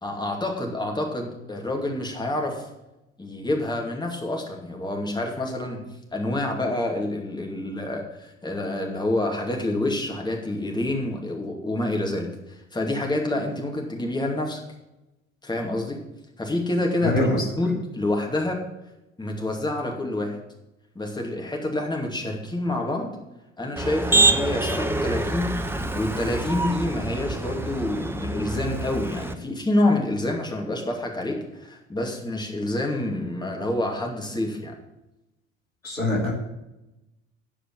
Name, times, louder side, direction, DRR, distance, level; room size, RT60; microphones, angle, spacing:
voice 1, 0.0-2.7 3.2-5.8 6.1-14.6 15.4-16.0 16.4-17.3 17.6-18.6 19.2-20.4 20.9-23.1 23.6-25.6 25.9-34.7, left 1 dB, 10° left, 1 dB, 2.5 m, -27 dB
voice 2, 17.0-17.4 35.8-36.3, left 1 dB, 90° left, -1 dB, 2.1 m, -23 dB
Motor vehicle (road), 23.8-29.3, right 2 dB, 5° right, 0.8 m, -26 dB
12.5 x 5.0 x 7.6 m, 0.95 s
figure-of-eight pair, 60°, 38 cm